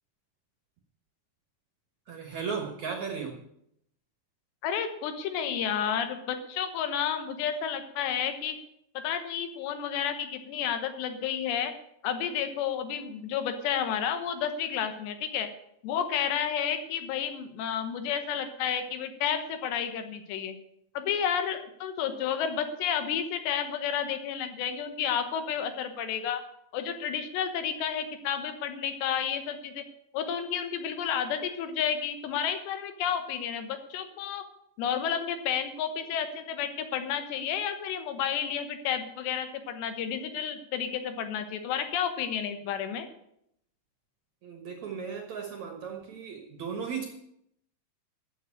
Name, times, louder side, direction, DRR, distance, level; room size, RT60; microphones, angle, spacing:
voice 1, 2.1-3.4 44.4-47.1, right 6 dB, 60° right, 3 dB, 1.9 m, -36 dB
voice 2, 4.6-8.6 8.9-11.7 12.0-15.5 15.8-20.5 20.9-26.4 26.7-29.8 30.1-34.4 34.8-43.1, left 8 dB, 80° left, 9 dB, 3.4 m, -31 dB
14.0 x 7.2 x 8.5 m, 0.76 s
omnidirectional pair, 4.9 m